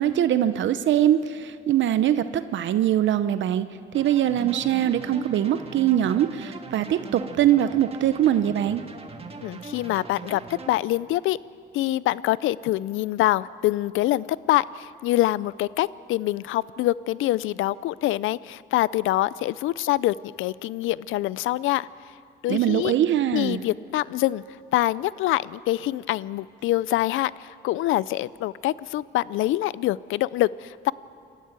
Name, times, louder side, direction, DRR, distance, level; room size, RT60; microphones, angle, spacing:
voice 1, 0.0-3.6 3.9-8.8 22.5-23.6, right 11 dB, 70° right, 12 dB, 0.7 m, -22 dB
sound 1, 3.9-10.8, right 4 dB, 30° right, 1.7 m, -40 dB
voice 2, 9.4-11.4 11.7-21.9 22.4-22.9 23.3-24.4 24.7-30.9, left 15 dB, 85° left, 20 dB, 0.5 m, -25 dB
26.5 x 14.0 x 8.9 m, 2.5 s
cardioid pair, 90°, 20 cm